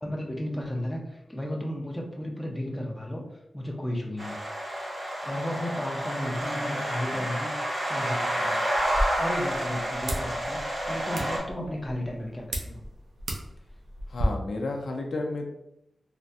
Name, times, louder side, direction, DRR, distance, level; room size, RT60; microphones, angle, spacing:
voice 1, 0.0-3.2 3.5-4.4 5.2-8.6 9.2-12.8, left 1 dB, 10° left, 0 dB, 0.4 m, -34 dB
sound 1, 4.2-11.4, right 1 dB, 45° right, 1.3 m, -30 dB
sound 2, 8.7-14.2, equal, 75° right, 0.5 m, -35 dB
voice 2, 14.1-15.5, left 2 dB, 70° left, 2 dB, 0.4 m, -32 dB
3.2 x 2.1 x 2.6 m, 0.82 s
wide cardioid pair, 160°, 0 cm